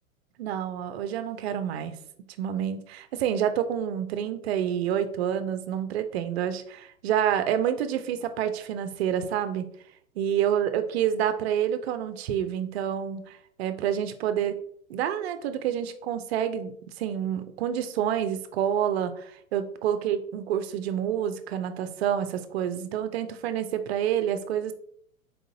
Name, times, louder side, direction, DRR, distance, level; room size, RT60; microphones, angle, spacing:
voice 1, 0.4-1.9 2.4-9.7 10.2-14.6 14.9-16.7 17.0-24.7, right 9 dB, 50° right, 10 dB, 0.6 m, -28 dB
4.2 x 3.7 x 2.7 m, 0.63 s
figure-of-eight pair, 105°, 42 cm